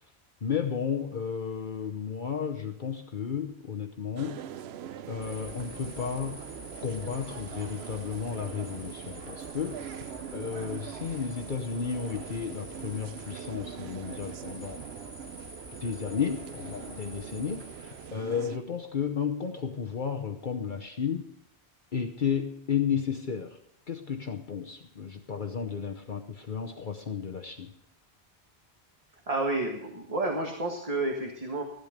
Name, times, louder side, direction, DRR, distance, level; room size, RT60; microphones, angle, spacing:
voice 1, 0.4-4.4 5.1-6.4 6.8-10.0 10.3-14.8 15.8-21.3 21.9-23.6 23.9-27.7, left 7 dB, 50° left, 4 dB, 1.0 m, -33 dB
sound 1, 4.2-18.6, right 9 dB, 75° right, 0.9 m, -42 dB
sound 2, 5.2-18.1, left 1 dB, 10° left, 2.8 m, -47 dB
voice 2, 29.3-31.6, right 2 dB, 35° right, 1 dB, 1.7 m, -30 dB
14.5 x 11.5 x 5.2 m, 0.76 s
omnidirectional pair, 1.1 m